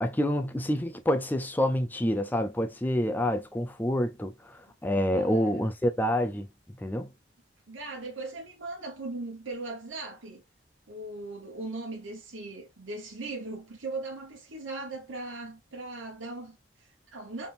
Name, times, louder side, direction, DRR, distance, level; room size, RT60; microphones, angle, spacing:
voice 1, 0.0-6.5 6.8-7.1, equal, 10° left, 0.4 m, -27 dB
voice 2, 5.1-5.7 7.7-10.4 10.9-17.5, right 2 dB, 80° right, 1.1 m, -39 dB
4.3 x 3.5 x 2.5 m
head